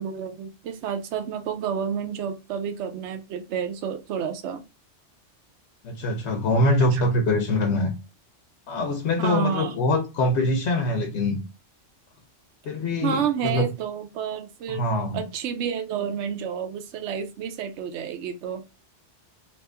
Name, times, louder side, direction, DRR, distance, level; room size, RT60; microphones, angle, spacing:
voice 1, 0.0-4.6 6.9-7.1 9.2-9.7 13.0-14.9 15.1-18.6, right 7 dB, 70° right, 0.9 m, -30 dB
voice 2, 5.8-7.9 8.7-11.4 12.6-13.7 14.7-15.2, left 1 dB, 70° left, 0.9 m, -24 dB
3.0 x 2.5 x 3.3 m
omnidirectional pair, 1.2 m